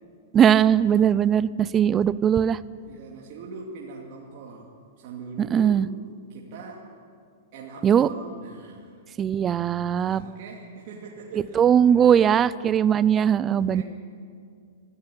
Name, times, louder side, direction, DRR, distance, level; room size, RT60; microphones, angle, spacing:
voice 1, 0.3-2.6 5.4-5.9 7.8-8.1 9.2-10.2 11.5-13.8, right 8 dB, 20° right, 18 dB, 0.4 m, -19 dB
voice 2, 2.9-5.8 6.3-6.9 7.5-9.0 10.0-12.3 12.9-13.0 13.6-13.8, right 4 dB, 50° right, -2 dB, 2.5 m, -42 dB
17.5 x 15.0 x 10.0 m, 2.2 s
hypercardioid pair, 150°, 0 cm